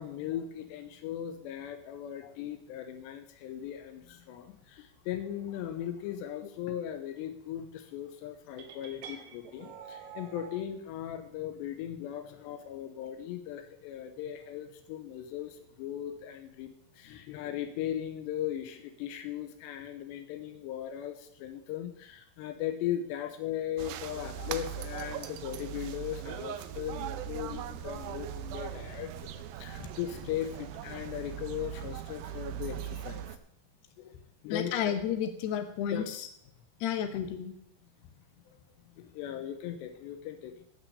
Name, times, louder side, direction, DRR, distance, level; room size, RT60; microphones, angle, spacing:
voice 1, 0.0-16.7 17.0-33.2 34.0-34.2 34.4-34.9 35.9-36.1 38.5-38.6 39.0-40.5, left 11 dB, 90° left, 7 dB, 3.0 m, -38 dB
sound 1, 8.6-10.6, right 7 dB, 65° right, 2.6 m, -47 dB
sound 2, 23.8-33.4, right 10 dB, 85° right, 2.1 m, -40 dB
voice 2, 34.5-36.3 36.8-37.5, left 9 dB, 75° left, 7 dB, 3.1 m, -32 dB
15.0 x 6.1 x 6.8 m, 0.74 s
omnidirectional pair, 5.0 m